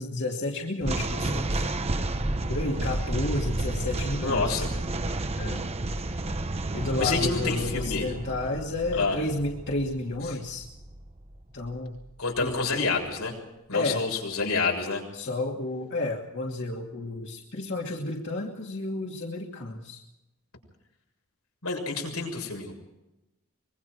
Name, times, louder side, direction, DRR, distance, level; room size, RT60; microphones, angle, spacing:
voice 1, 0.0-1.7 2.5-4.6 5.4-5.6 6.7-10.7 11.5-12.0 12.4-12.5 13.7-14.0 15.1-20.0, left 2 dB, 55° left, -1 dB, 2.6 m, -31 dB
sound 1, 0.8-12.1, right 2 dB, 30° right, 1.0 m, -31 dB
voice 2, 4.2-4.7 7.0-8.1 8.9-9.2 10.3-10.4 12.2-13.3 13.7-15.0 21.6-22.7, left 4 dB, 85° left, 1 dB, 6.9 m, -28 dB
24.5 x 22.5 x 4.8 m, 0.96 s
head